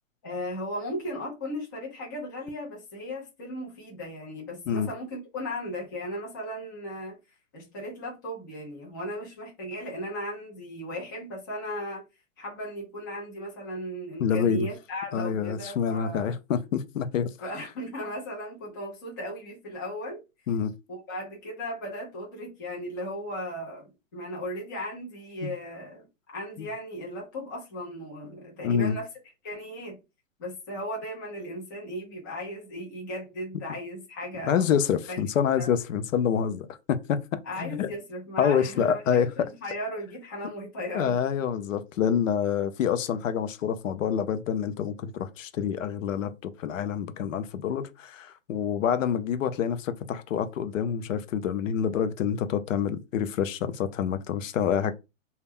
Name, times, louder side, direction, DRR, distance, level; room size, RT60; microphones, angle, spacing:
voice 1, 0.2-7.2 7.5-12.0 12.4-16.3 17.4-20.2 20.9-29.1 29.4-30.0 30.4-34.8 35.1-35.2 35.6-35.7 37.4-41.1 42.4-42.5, equal, 15° left, 0.5 m, -36 dB
voice 2, 14.2-14.7 15.1-17.3 20.5-20.7 25.4-25.5 26.6-26.7 28.6-29.0 34.5-37.9 38.4-39.3 40.9-54.9, left 8 dB, 75° left, 0.5 m, -27 dB
2.2 x 2.0 x 3.4 m
hypercardioid pair, 160°, 40 cm